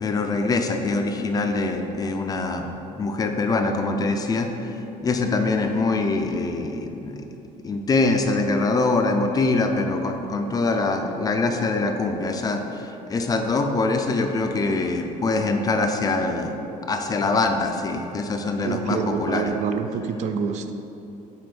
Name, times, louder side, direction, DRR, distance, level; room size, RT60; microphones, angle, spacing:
voice 1, 0.0-7.2 7.6-16.5 16.9-19.5, left 3 dB, 25° left, 4 dB, 0.4 m, -24 dB
voice 2, 18.6-20.7, right 6 dB, 55° right, 7 dB, 0.4 m, -26 dB
5.2 x 4.1 x 6.0 m, 2.9 s
cardioid pair, 150°, 14 cm